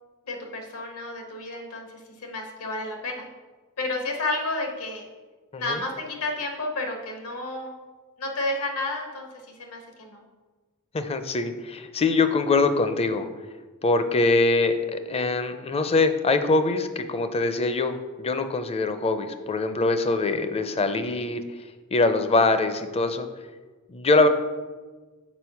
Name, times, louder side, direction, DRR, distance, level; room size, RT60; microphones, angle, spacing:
voice 1, 0.3-1.9 2.2-3.3 3.8-5.1 5.6-7.7 8.2-10.2, left 2 dB, 80° left, 2 dB, 1.4 m, -31 dB
voice 2, 10.9-13.3 13.8-21.4 21.9-23.3 23.9-24.3, left 3 dB, 25° left, 9 dB, 0.5 m, -23 dB
6.2 x 4.9 x 5.7 m, 1.3 s
head